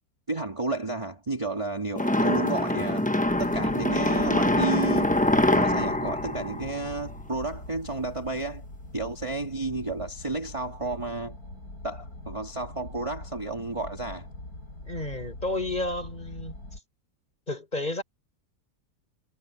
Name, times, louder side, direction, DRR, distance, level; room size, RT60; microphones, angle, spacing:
voice 1, 0.3-3.1 3.4-5.1 5.5-8.6 8.9-11.4 11.8-14.3, right 3 dB, 20° right, 1.8 m, -31 dB
sound 1, 2.0-7.3, left 1 dB, 10° left, 0.6 m, -24 dB
sound 2, 3.2-16.8, left 2 dB, 60° left, 7.5 m, -43 dB
voice 2, 14.9-16.5 17.5-18.0, left 2 dB, 25° left, 5.4 m, -31 dB
omnidirectional pair, 1.8 m